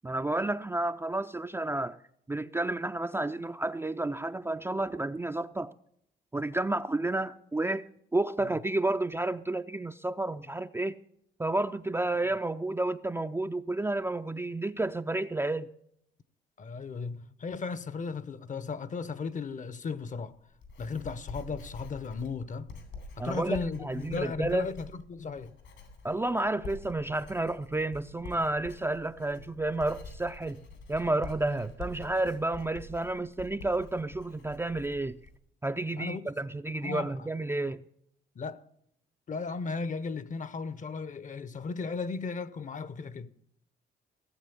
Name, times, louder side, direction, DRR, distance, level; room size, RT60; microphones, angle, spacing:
voice 1, 0.0-2.0 2.3-5.7 6.3-11.0 11.4-15.7 23.2-24.7 26.0-30.6 30.9-35.2 35.6-37.8, right 2 dB, 10° right, 0.4 m, -31 dB
voice 2, 16.6-20.4 20.8-22.7 23.2-25.6 36.0-36.3 36.8-37.3 38.4-38.7 39.3-43.3, left 4 dB, 40° left, 0.8 m, -36 dB
Writing, 20.3-35.4, left 3 dB, 80° left, 3.8 m, -47 dB
16.5 x 7.6 x 7.0 m
cardioid pair, 90°, 20 cm